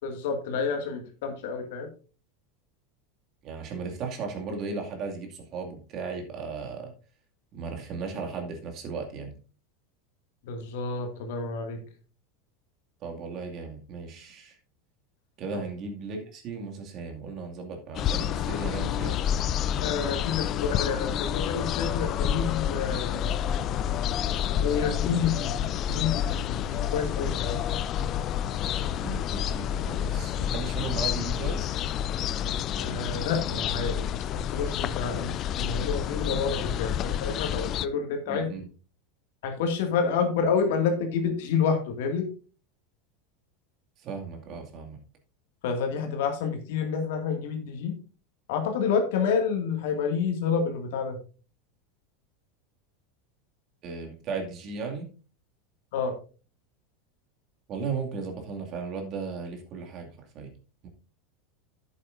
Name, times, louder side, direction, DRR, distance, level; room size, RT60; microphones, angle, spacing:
voice 1, 0.0-1.9 10.5-11.8 19.8-23.2 24.5-25.5 25.9-27.6 32.8-38.5 39.4-42.2 45.6-47.9 48.5-51.2 55.9-56.1, left 6 dB, 70° left, 4 dB, 2.2 m, -29 dB
voice 2, 3.4-6.9 7.5-9.4 13.0-14.6 15.4-19.2 28.7-31.8 38.3-38.7 44.0-45.0 53.8-55.1 57.7-60.5 60.8-60.9, right 4 dB, 45° right, 2 dB, 2.4 m, -36 dB
sound 1, 17.9-37.9, left 10 dB, 45° left, 0.5 m, -29 dB
11.0 x 8.3 x 2.7 m, 0.35 s
hypercardioid pair, 90°, 0 cm